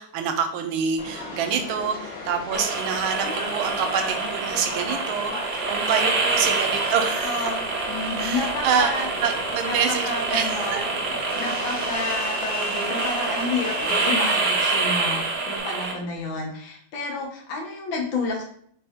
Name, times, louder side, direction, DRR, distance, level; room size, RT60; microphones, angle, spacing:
voice 1, 0.0-7.5 8.2-10.8, right 7 dB, 90° right, 6 dB, 1.5 m, -27 dB
Subway metro underground, 1.0-15.6, left 3 dB, 45° left, 0.8 m, -35 dB
sound 1, 2.5-15.9, right 4 dB, 65° right, 1.1 m, -27 dB
voice 2, 6.1-6.6 7.2-7.6 7.9-9.1 9.7-9.8 10.0-10.8 11.1-18.4, left 3 dB, 75° left, 0 dB, 1.7 m, -30 dB
3.4 x 3.3 x 3.5 m, 0.64 s
omnidirectional pair, 2.2 m